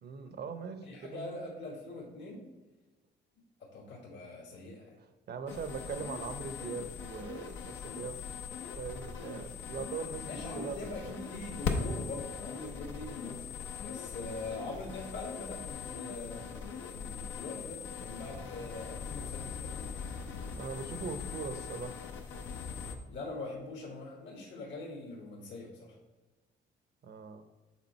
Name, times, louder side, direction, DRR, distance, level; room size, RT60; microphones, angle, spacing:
voice 1, 0.0-1.4 5.3-8.2 8.8-11.1 18.3-18.7 20.6-22.0 27.0-27.4, right 5 dB, 55° right, 9 dB, 0.8 m, -41 dB
voice 2, 0.8-2.4 3.6-5.0 10.2-13.5 13.7-19.9 23.1-25.9, left 2 dB, 65° left, -1 dB, 1.4 m, -43 dB
sound 1, 5.5-23.0, left 5 dB, 85° left, 0.8 m, -40 dB
7.3 x 3.9 x 4.2 m, 1.2 s
cardioid pair, 90°, 20 cm